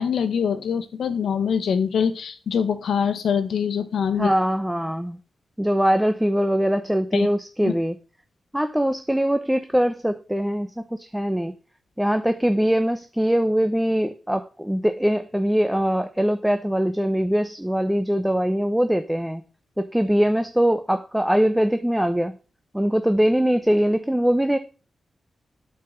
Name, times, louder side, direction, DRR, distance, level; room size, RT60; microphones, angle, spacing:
voice 1, 0.0-4.3 7.1-7.3 7.6-7.7, left 7 dB, 85° left, 11 dB, 1.0 m, -24 dB
voice 2, 4.1-5.2 5.6-8.0 8.5-11.5 12.0-19.4 19.8-22.4 22.7-24.6, equal, 5° right, 9 dB, 0.6 m, -22 dB
8.0 x 4.7 x 6.3 m, 0.35 s
cardioid pair, 85°, 0 cm